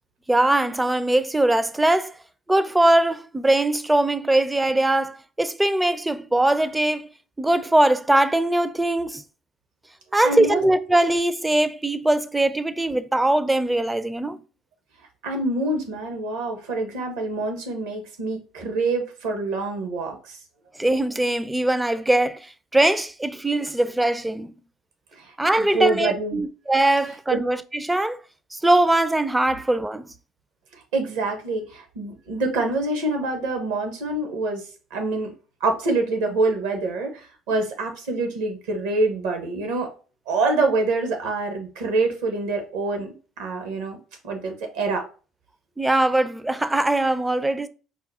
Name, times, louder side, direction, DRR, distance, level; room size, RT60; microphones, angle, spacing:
voice 1, 0.3-2.1 2.5-7.1 7.4-9.2 10.1-14.4 20.8-24.5 25.4-28.2 28.5-30.1 45.8-47.7, right 1 dB, 10° right, 0.5 m, -21 dB
voice 2, 10.2-10.6 15.2-20.4 25.2-25.3 25.6-26.4 27.3-27.4 30.9-35.3 35.6-39.9 40.3-43.1 43.4-44.0 44.2-45.0, right 3 dB, 75° right, 1.2 m, -26 dB
4.9 x 2.3 x 4.0 m
hypercardioid pair, 60°, 0 cm